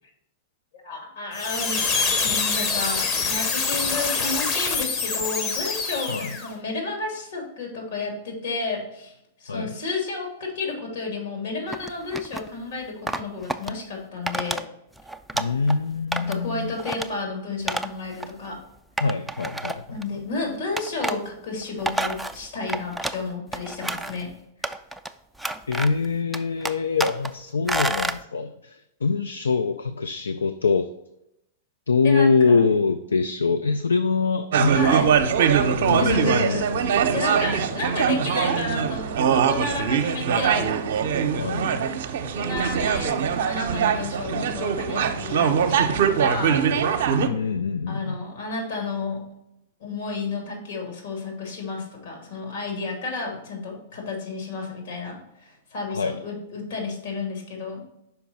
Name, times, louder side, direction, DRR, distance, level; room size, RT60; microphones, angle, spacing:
voice 1, 0.8-1.9 2.2-14.6 16.2-18.6 19.9-24.3 32.0-32.6 34.7-35.1 35.9-40.7 42.2-46.6 47.9-49.3 49.8-57.8, left 3 dB, 70° left, 0 dB, 2.2 m, -32 dB
sound 1, 1.3-6.5, left 4 dB, 40° left, 0.9 m, -25 dB
sound 2, 11.7-12.5 13.1-13.7 14.3-14.6 15.0-15.8 16.1-16.5 16.8-17.1 17.7-17.9 18.2-18.3 19.0-20.0 20.8-21.2 21.6-23.2 23.5-24.2 24.6-25.1 25.4-26.1 26.3-27.3 27.7-28.2, right 1 dB, ahead, 0.3 m, -29 dB
voice 2, 15.3-16.7 19.0-20.0 25.7-30.9 31.9-34.9 35.2-35.3 35.8-36.8 41.3-41.8 47.1-48.2 55.9-56.1, left 4 dB, 85° left, 10 dB, 0.3 m, -24 dB
sound 3, 34.5-47.3, right 7 dB, 65° right, 0.6 m, -22 dB
5.7 x 4.6 x 4.0 m, 0.83 s
hypercardioid pair, 105°, 0 cm